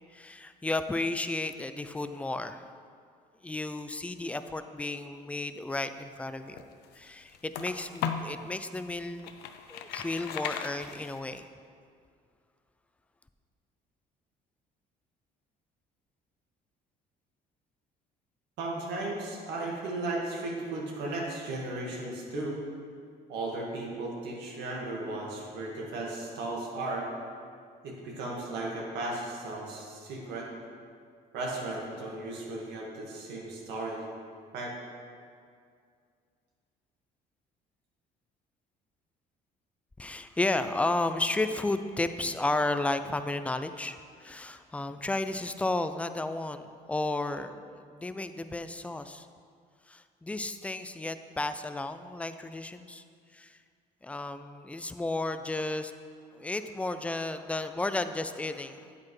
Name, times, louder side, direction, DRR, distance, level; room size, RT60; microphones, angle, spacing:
voice 1, 0.1-2.7 3.4-6.6 6.9-9.3 9.7-11.5 40.0-49.3 49.9-53.0 53.3-53.6 54.0-55.9 56.3-58.9, left 2 dB, 10° left, 10 dB, 0.3 m, -33 dB
sound 1, 6.3-8.4 8.9-11.4, left 8 dB, 80° left, 0.6 m, -37 dB
voice 2, 18.6-22.6 23.3-27.1 27.8-30.5 31.3-34.1 34.5-34.8, right 2 dB, 80° right, -2 dB, 1.8 m, -35 dB
8.6 x 8.4 x 3.2 m, 2.2 s
cardioid pair, 110°, 17 cm